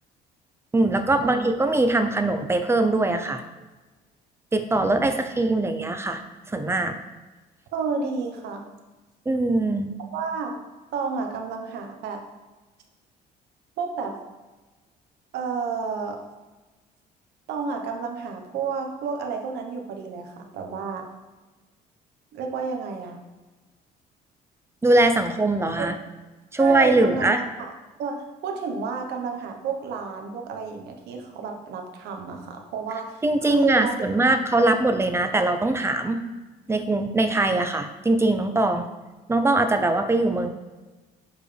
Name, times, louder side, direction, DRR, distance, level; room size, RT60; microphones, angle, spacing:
voice 1, 0.7-3.4 4.5-6.2 6.5-6.9 9.3-9.9 24.8-26.0 26.5-27.4 33.2-36.2 36.7-38.9 39.3-40.5, right 2 dB, 15° right, 8 dB, 0.7 m, -21 dB
voice 2, 7.7-8.7 10.1-10.6 10.9-12.2 13.8-14.2 15.3-16.2 17.5-21.0 22.3-23.2 25.8-25.9 26.6-27.7 28.0-33.2 33.5-34.8, right 5 dB, 80° right, 3 dB, 1.2 m, -31 dB
11.0 x 4.6 x 3.4 m, 1.2 s
cardioid pair, 110°, 17 cm